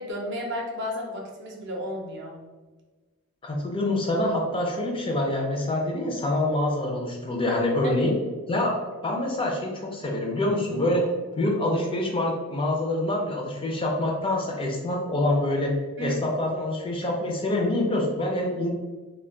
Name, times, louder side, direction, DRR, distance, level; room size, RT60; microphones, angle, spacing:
voice 1, 0.0-2.4 7.8-7.9 16.0-16.2, equal, 50° right, 0 dB, 0.6 m, -33 dB
voice 2, 3.4-8.2 8.5-8.7 9.0-11.1 11.3-15.7 16.0-18.7, left 1 dB, 25° left, 0 dB, 0.4 m, -26 dB
2.2 x 2.2 x 3.6 m, 1.3 s
head